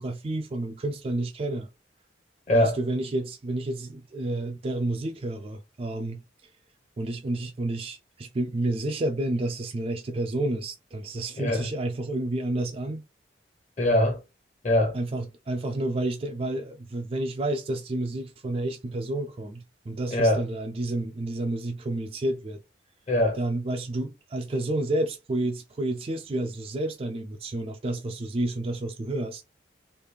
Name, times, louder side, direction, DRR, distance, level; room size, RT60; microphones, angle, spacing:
voice 1, 0.0-1.7 2.5-6.2 7.0-13.0 14.9-22.6 23.4-29.4, right 1 dB, 30° right, 0.3 m, -30 dB
voice 2, 2.5-2.8 11.4-11.7 13.8-14.2 14.6-15.0 20.1-20.4 23.1-23.4, left 1 dB, 40° left, 0.9 m, -22 dB
3.3 x 2.4 x 3.2 m
head